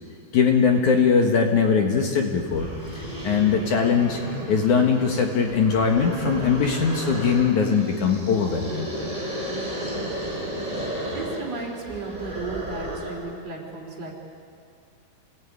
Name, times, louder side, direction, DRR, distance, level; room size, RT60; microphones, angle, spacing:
voice 1, 0.3-2.7 2.9-4.2 4.5-8.9, left 6 dB, 60° left, 2 dB, 2.7 m, -21 dB
sound 1, 2.5-13.3, equal, 10° right, 7.0 m, -33 dB
voice 2, 11.1-14.1, right 3 dB, 40° right, 0 dB, 4.7 m, -34 dB
28.0 x 18.5 x 9.7 m, 2.3 s
omnidirectional pair, 4.4 m